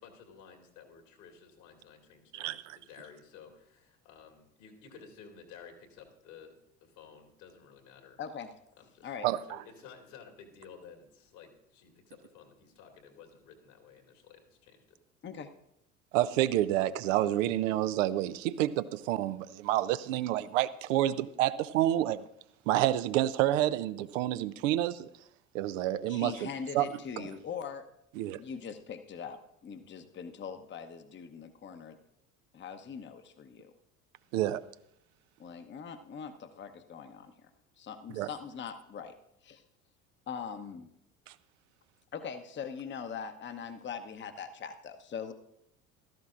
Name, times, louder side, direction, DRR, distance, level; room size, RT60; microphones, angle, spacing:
voice 1, 0.0-8.2 8.8-9.1 9.5-15.0, left 6 dB, 65° left, 2.2 m, -54 dB
voice 2, 2.3-2.8 9.2-9.6 16.1-22.3 22.7-25.1 25.5-26.9 27.2-27.3 28.2-28.4 34.3-34.6 38.1-38.3 41.3-41.4, right 13 dB, 70° right, 0.6 m, -29 dB
voice 3, 8.2-8.5 9.0-9.3 15.2-15.5 26.1-27.8 28.4-32.0 32.5-33.7 35.4-37.5 37.8-39.1 39.4-39.7 40.3-40.9 42.1-45.3, left 6 dB, 30° left, 0.9 m, -41 dB
15.5 x 13.0 x 2.5 m
hypercardioid pair, 65°, 40 cm